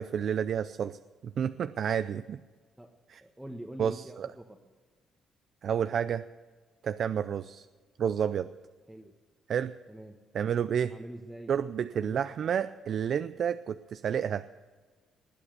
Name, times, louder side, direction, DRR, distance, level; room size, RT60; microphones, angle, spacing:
voice 1, 0.0-2.4 3.1-3.2 3.8-4.3 5.6-6.3 6.8-7.7 8.0-8.5 9.5-9.8 10.3-11.0 11.5-14.5, right 8 dB, 60° right, 12 dB, 0.4 m, -30 dB
voice 2, 3.2-4.6 8.9-9.1 9.9-10.2 10.9-11.5 11.9-12.2, right 1 dB, 5° right, 1 dB, 1.2 m, -44 dB
20.0 x 8.5 x 6.8 m, 1.4 s
cardioid pair, 90°, 0 cm